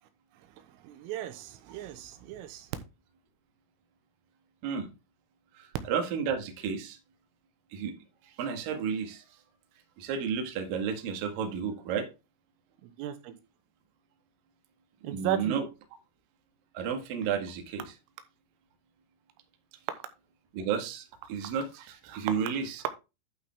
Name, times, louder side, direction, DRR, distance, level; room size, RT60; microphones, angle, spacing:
voice 1, 0.8-2.7 12.8-13.3 15.0-15.6, right 11 dB, 90° right, 3.8 m, -35 dB
voice 2, 5.6-7.0 7.7-7.9 8.4-9.2 10.0-12.1 15.0-15.6 16.7-17.9 20.5-22.8, right 6 dB, 55° right, 2.9 m, -32 dB
11.5 x 5.6 x 3.5 m
omnidirectional pair, 5.7 m